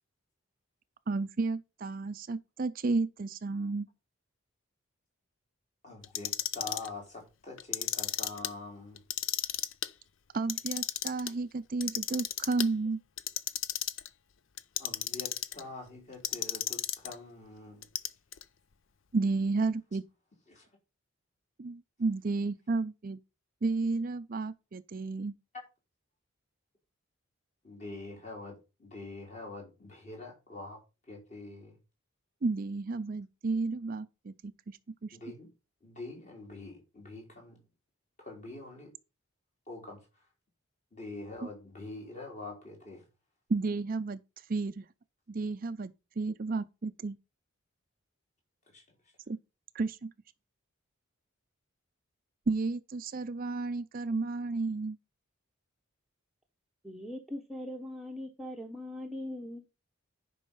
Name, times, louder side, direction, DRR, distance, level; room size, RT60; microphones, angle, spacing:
voice 1, 1.1-3.9 10.3-13.0 19.1-20.0 21.6-23.2 23.6-25.3 32.4-35.2 43.5-44.2 44.5-44.8 45.3-47.2 49.3-49.4 49.7-50.1 52.5-55.0, right 3 dB, 40° right, 0.4 m, -32 dB
voice 2, 5.8-9.0 14.8-17.9 20.5-20.7 27.6-30.8 31.1-31.8 35.1-35.5 35.8-37.6 38.2-38.9 39.7-40.0 40.9-43.0 48.7-48.8, left 2 dB, 35° left, 4.1 m, -45 dB
Clock, 6.0-6.9 7.6-8.5 9.0-9.9 10.3-11.3 11.8-12.7 13.2-14.1 14.6-15.6 16.2-17.1 17.8-18.4, left 12 dB, 65° left, 0.6 m, -33 dB
voice 3, 56.8-59.6, left 1 dB, ahead, 0.9 m, -40 dB
10.5 x 5.5 x 5.5 m
head